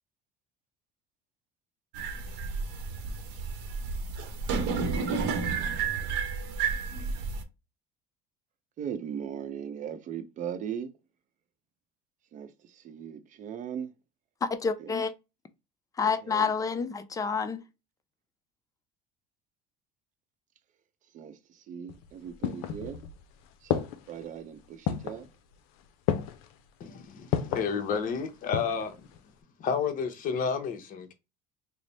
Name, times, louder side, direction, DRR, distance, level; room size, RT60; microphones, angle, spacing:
sound 1, 1.9-7.4, right 5 dB, 70° right, 0.9 m, -31 dB
voice 1, 8.8-10.9 12.3-12.5 12.8-13.9 14.8-14.9 16.3-16.5 21.1-21.3 21.7-23.0 23.7-24.6 24.9-25.2, right 8 dB, 45° right, 0.6 m, -38 dB
voice 2, 14.4-15.1 16.0-17.6, left 5 dB, 20° left, 0.5 m, -28 dB
sound 2, 21.9-23.2 23.7-24.2 24.9-25.3 26.1-26.5 27.3-27.7 28.3-28.9 29.2-29.3, left 9 dB, 85° left, 0.5 m, -30 dB
voice 3, 26.8-29.1 29.6-31.1, left 6 dB, 50° left, 0.8 m, -31 dB
3.2 x 2.0 x 4.0 m
supercardioid pair, 115°, 18 cm